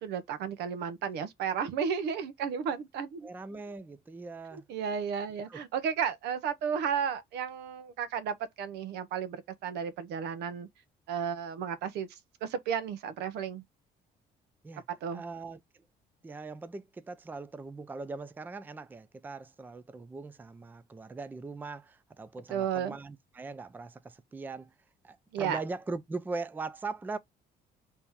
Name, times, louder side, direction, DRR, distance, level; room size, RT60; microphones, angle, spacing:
voice 1, 0.0-3.3 4.5-10.7 11.1-13.6 15.0-15.2 22.5-23.0 25.3-25.6, right 7 dB, 80° right, 0.8 m, -33 dB
voice 2, 3.2-4.6 5.5-5.6 14.6-14.8 15.1-15.6 16.2-24.7 25.0-27.2, right 3 dB, 10° right, 0.4 m, -40 dB
3.6 x 2.8 x 4.2 m
cardioid pair, 110°, 17 cm